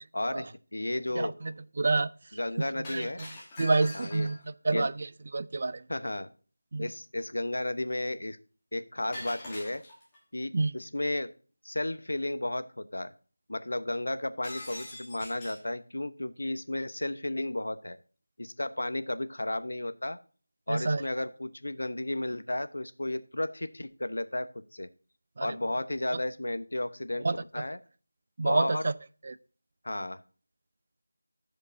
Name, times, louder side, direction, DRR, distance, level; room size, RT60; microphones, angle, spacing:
voice 1, 0.1-1.3 2.3-3.2 3.9-4.3 4.7-4.9 5.9-6.3 6.8-8.4 8.7-9.8 10.3-11.3 11.6-13.1 13.5-18.0 18.4-20.2 20.7-24.9 25.4-27.8 28.4-28.8 29.8-30.2, left 1 dB, 80° left, 0.9 m, -33 dB
voice 2, 1.2-2.1 2.9-3.1 3.6-4.4 4.6-5.1 5.3-5.8 6.7-6.9 10.5-10.7 20.7-21.0 25.4-25.5 27.2-27.3 28.4-28.9 29.2-29.4, right 3 dB, 30° right, 0.3 m, -28 dB
Shatter, 2.8-4.5 9.1-10.2 14.4-15.7, left 1 dB, 10° left, 1.3 m, -43 dB
15.5 x 5.2 x 2.7 m
figure-of-eight pair, 180°, 0 cm